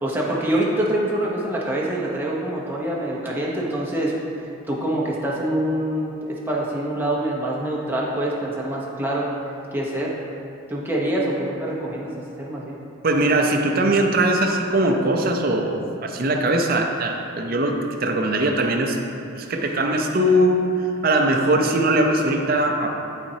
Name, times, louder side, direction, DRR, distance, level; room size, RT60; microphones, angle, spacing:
voice 1, 0.0-4.1 4.7-9.3 9.7-10.1 10.7-12.1 12.4-12.7, right 1 dB, 10° right, -4 dB, 0.8 m, -25 dB
voice 2, 13.0-19.0 19.4-22.9, right 1 dB, 45° right, 3 dB, 0.5 m, -21 dB
11.5 x 4.2 x 2.8 m, 2.6 s
head